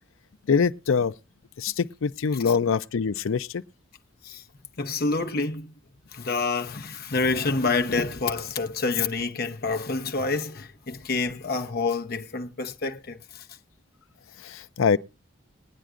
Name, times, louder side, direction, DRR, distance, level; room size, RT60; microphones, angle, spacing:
voice 1, 0.5-1.1 1.6-3.6 14.8-15.0, left 5 dB, 75° left, 0.5 m, -23 dB
voice 2, 4.8-5.7 6.1-13.5, left 3 dB, 50° left, 0.8 m, -28 dB
20.5 x 9.2 x 2.5 m
head